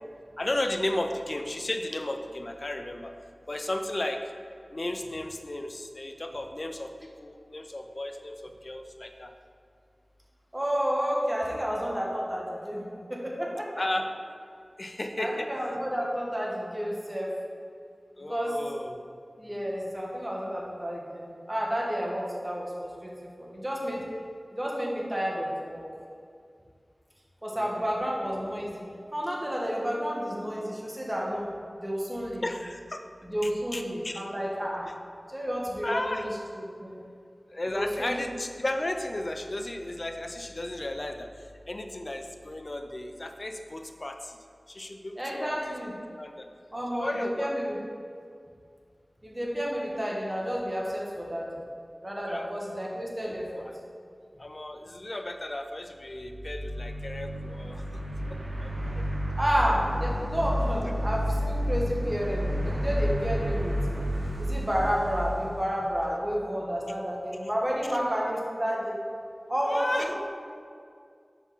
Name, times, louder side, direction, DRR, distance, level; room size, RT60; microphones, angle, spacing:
voice 1, 0.4-3.1 3.5-4.3 4.7-9.3 13.8-14.0 14.8-15.6 18.2-19.0 22.2-22.3 27.5-28.0 32.4-33.0 33.4-34.2 34.8-34.9 35.8-36.3 37.5-44.4 44.7-45.6 46.2-46.5 46.9-47.5 52.3-52.5 53.6-53.7 54.4-58.0 58.3-59.2 67.9-68.0 69.6-70.2, left 1 dB, 50° left, 5 dB, 0.5 m, -34 dB
voice 2, 10.5-13.8 15.2-17.3 18.3-18.5 19.4-23.1 23.4-24.0 24.5-25.8 27.4-28.8 29.1-31.5 31.8-32.4 33.2-34.9 35.3-37.0 37.7-38.2 45.2-45.9 46.7-47.8 49.2-51.5 52.0-53.7 59.3-63.7 64.4-69.0 69.5-70.2, equal, 20° right, -3 dB, 1.6 m, -31 dB
sound 1, 56.1-66.4, equal, 75° right, 1.1 m, -31 dB
5.4 x 4.9 x 5.6 m, 2.3 s
wide cardioid pair, 45°, 0 cm